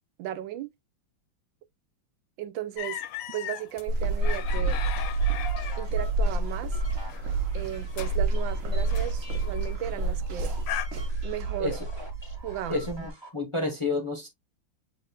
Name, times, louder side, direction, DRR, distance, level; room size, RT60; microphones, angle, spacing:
voice 1, 0.2-0.7 2.4-3.0 3.3-4.8 5.8-6.8 7.5-10.5 11.2-11.8 12.4-12.9, right 12 dB, 80° right, 1.4 m, -35 dB
sound 1, 2.8-10.9, left 12 dB, 75° left, 1.3 m, -39 dB
sound 2, 3.9-13.1, right 2 dB, 55° right, 1.0 m, -29 dB
sound 3, 4.6-13.3, left 1 dB, 20° right, 0.9 m, -49 dB
voice 2, 12.7-14.3, left 2 dB, 35° left, 0.5 m, -30 dB
7.4 x 3.0 x 2.3 m
omnidirectional pair, 2.1 m